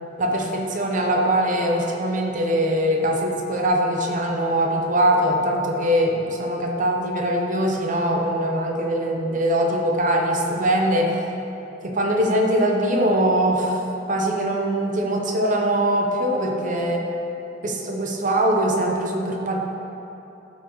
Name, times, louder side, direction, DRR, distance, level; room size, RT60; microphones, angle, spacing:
voice 1, 0.2-11.2 11.8-13.8 14.1-17.1 17.6-19.6, right 1 dB, 45° right, 1 dB, 0.7 m, -22 dB
12.5 x 4.6 x 3.1 m, 3.0 s
head